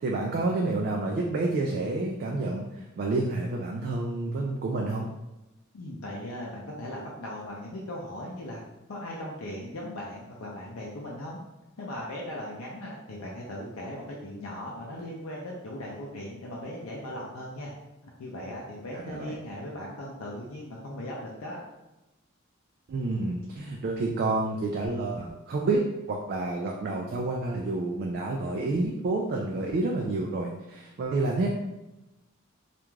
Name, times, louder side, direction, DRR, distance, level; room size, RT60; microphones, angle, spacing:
voice 1, 0.0-5.1 18.9-19.3 22.9-25.8 26.1-31.5, right 2 dB, 50° right, 0 dB, 0.3 m, -29 dB
voice 2, 5.7-8.6 8.9-11.4 11.8-17.7 18.2-21.6, left 1 dB, 85° left, -3 dB, 0.5 m, -38 dB
2.4 x 2.2 x 3.1 m, 1.0 s
head